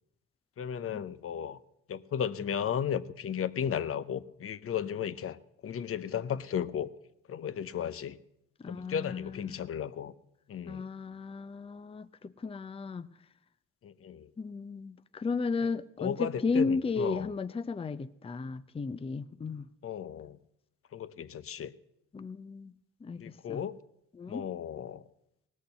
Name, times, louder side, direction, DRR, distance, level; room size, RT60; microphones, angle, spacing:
voice 1, 0.6-1.6 1.9-5.4 5.6-6.9 7.3-8.2 8.7-10.1 10.5-10.9 13.8-14.3 15.6-15.7 16.0-17.3 19.8-20.4 20.9-21.7 23.2-23.8 24.3-25.0, left 8 dB, 45° left, 15 dB, 0.8 m, -34 dB
voice 2, 8.6-9.7 10.7-13.1 14.4-19.7 22.1-22.7 23.0-23.6 24.1-24.5, left 4 dB, 20° left, 15 dB, 0.5 m, -34 dB
18.5 x 6.5 x 8.1 m, 0.79 s
cardioid pair, 90°, 30 cm